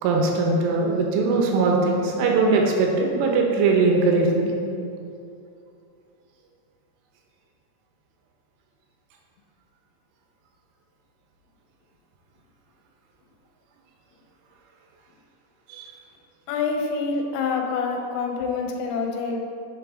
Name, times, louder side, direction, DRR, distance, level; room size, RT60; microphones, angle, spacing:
voice 1, 0.0-4.5 15.7-15.9, right 3 dB, 80° right, 0 dB, 3.4 m, -21 dB
voice 2, 16.5-19.4, left 4 dB, 85° left, 2 dB, 3.7 m, -26 dB
11.0 x 7.6 x 3.7 m, 2.6 s
omnidirectional pair, 5.8 m